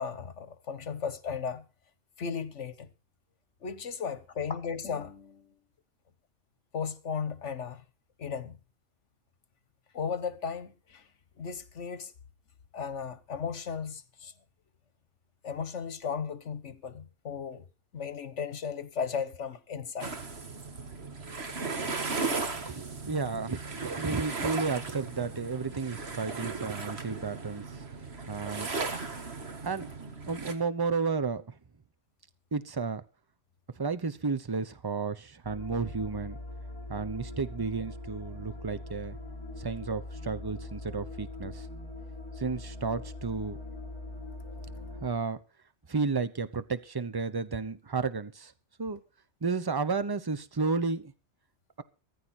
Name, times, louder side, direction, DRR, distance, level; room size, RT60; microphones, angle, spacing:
voice 1, 0.0-1.6 2.2-2.9 3.6-5.5 6.7-7.8 8.2-8.6 9.9-11.0 11.4-12.1 12.7-14.3 15.4-17.6 17.9-20.1 22.5-22.6, left 6 dB, 75° left, 1.6 m, -35 dB
sound 1, 20.0-30.5, right 4 dB, 60° right, 2.0 m, -36 dB
voice 2, 22.5-27.9 28.3-28.7 29.6-31.4 32.5-33.0 33.8-36.4 36.9-39.2 39.6-41.7 42.4-43.6 45.0-45.4 45.9-48.5 48.8-49.0 49.4-51.1, right 4 dB, 20° right, 0.8 m, -32 dB
sound 2, 35.4-45.1, left 2 dB, 20° left, 4.4 m, -42 dB
15.0 x 14.5 x 4.3 m
omnidirectional pair, 1.2 m